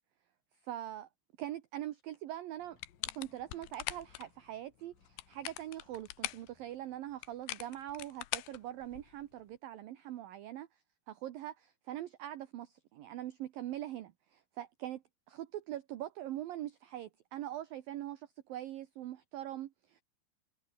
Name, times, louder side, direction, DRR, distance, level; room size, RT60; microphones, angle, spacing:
voice 1, 0.6-1.1 1.4-2.8 3.1-10.8 11.1-11.5 11.9-20.0, right 13 dB, 70° right, 2.4 m, -42 dB
sound 1, 2.6-6.6, left 4 dB, 50° left, 7.4 m, -70 dB
sound 2, 2.8-4.3 5.0-6.5 7.2-9.2, left 17 dB, 80° left, 3.0 m, -41 dB
omnidirectional pair, 5.3 m